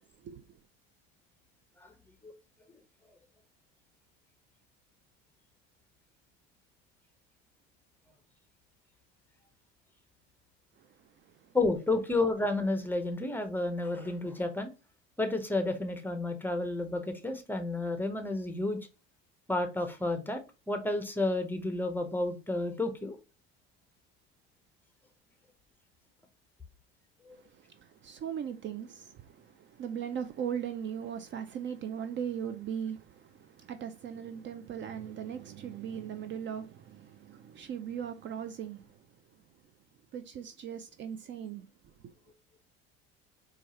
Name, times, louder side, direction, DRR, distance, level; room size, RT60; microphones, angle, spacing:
voice 1, 0.2-0.6 10.8-11.5 27.3-39.1 40.1-42.1, right 8 dB, 40° right, 0.4 m, -39 dB
voice 2, 11.5-14.7 15.2-18.8 19.5-20.4 20.7-23.2 27.3-27.4, left 2 dB, 5° left, 0.7 m, -31 dB
4.5 x 2.4 x 2.8 m
supercardioid pair, 95°, 29 cm